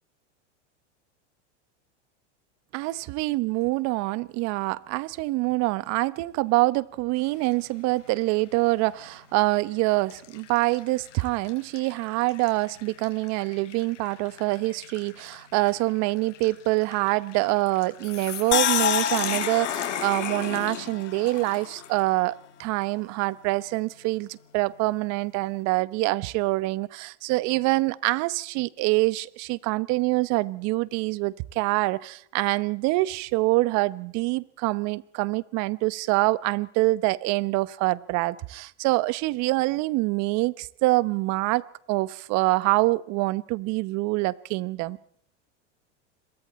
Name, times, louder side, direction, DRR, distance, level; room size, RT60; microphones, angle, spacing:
voice 1, 2.7-22.3 22.6-41.6 41.9-45.0, right 21 dB, 50° right, 1.0 m, -25 dB
sound 1, 7.2-7.6 8.2-8.3 9.2-9.5 10.1-22.1, left 9 dB, 90° left, 3.9 m, -37 dB
sound 2, 18.5-21.7 22.1-22.2, left 9 dB, 30° left, 1.5 m, -28 dB
28.5 x 22.5 x 4.3 m
supercardioid pair, 115°, 36 cm